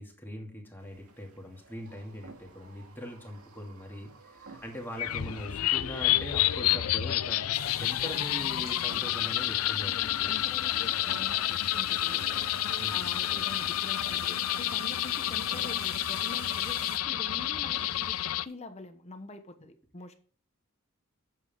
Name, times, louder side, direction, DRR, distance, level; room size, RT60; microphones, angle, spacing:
voice 1, 0.0-9.9 10.2-10.3 12.8-13.0 19.6-19.7, equal, 10° left, 0 dB, 2.5 m, -42 dB
sound 1, 0.8-18.3, right 3 dB, 85° right, 2.1 m, -52 dB
sound 2, 5.0-18.5, left 14 dB, 75° left, 0.5 m, -29 dB
sound 3, 7.5-17.0, right 8 dB, 70° right, 1.7 m, -49 dB
voice 2, 9.8-12.2 12.9-18.2 18.4-20.2, left 2 dB, 30° left, 8 dB, 1.0 m, -45 dB
9.7 x 7.6 x 3.7 m, 0.43 s
head